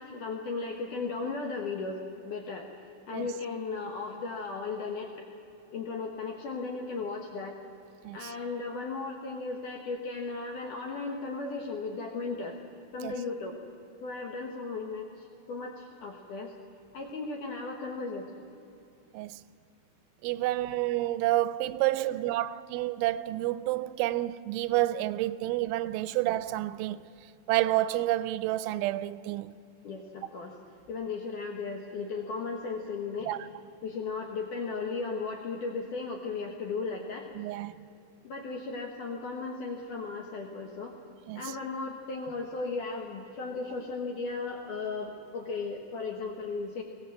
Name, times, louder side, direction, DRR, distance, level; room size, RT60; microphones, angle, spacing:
voice 1, 0.0-2.7 3.1-5.3 5.7-7.6 8.1-12.6 12.9-13.6 14.0-16.5 16.9-18.5 22.1-22.2 29.8-30.5 30.9-33.3 33.8-37.3 38.2-41.0 41.4-46.8, left 4 dB, 70° left, 2.0 m, -36 dB
voice 2, 20.2-27.0 27.5-29.5 33.3-33.4 37.4-37.9 41.3-41.5, right 15 dB, 85° right, 3.0 m, -29 dB
21.0 x 16.5 x 7.7 m
omnidirectional pair, 5.4 m